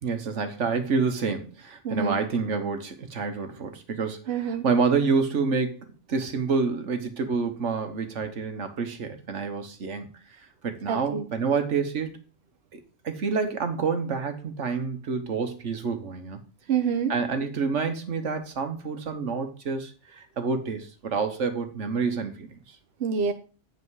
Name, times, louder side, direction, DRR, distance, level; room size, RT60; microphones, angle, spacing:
voice 1, 0.0-10.1 10.6-12.1 12.7-16.4 17.1-22.8, right 5 dB, 80° right, 7 dB, 1.5 m, -28 dB
voice 2, 1.8-2.2 4.3-4.6 10.9-11.3 16.7-17.1 23.0-23.3, right 6 dB, 60° right, 7 dB, 1.0 m, -26 dB
8.4 x 5.5 x 4.8 m, 0.35 s
omnidirectional pair, 1.2 m